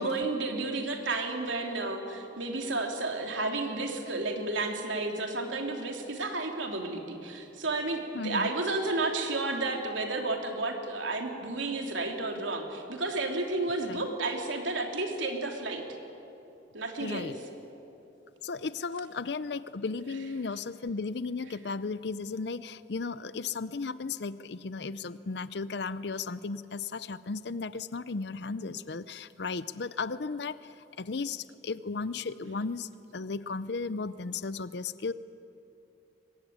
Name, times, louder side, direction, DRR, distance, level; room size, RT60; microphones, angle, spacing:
voice 1, 0.0-15.8 16.7-17.3, right 2 dB, 80° right, 3 dB, 3.1 m, -32 dB
voice 2, 8.1-8.5 13.9-14.0 17.0-17.3 18.4-35.1, left 4 dB, 60° left, 15 dB, 0.6 m, -35 dB
23.5 x 20.5 x 9.5 m, 2.8 s
head